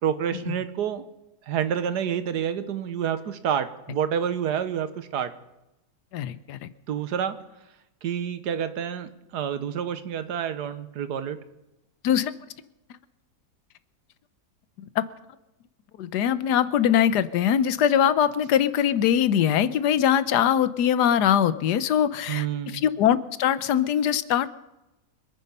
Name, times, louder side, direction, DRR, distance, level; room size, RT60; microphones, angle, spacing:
voice 1, 0.0-1.0 1.5-5.3 6.9-7.4 8.0-11.4 22.3-22.8, right 8 dB, 80° right, 12 dB, 1.6 m, -28 dB
voice 2, 6.1-6.7 12.0-12.3 15.0-15.1 16.0-24.5, left 9 dB, 85° left, 15 dB, 1.3 m, -22 dB
25.5 x 9.4 x 5.4 m, 0.95 s
omnidirectional pair, 1.7 m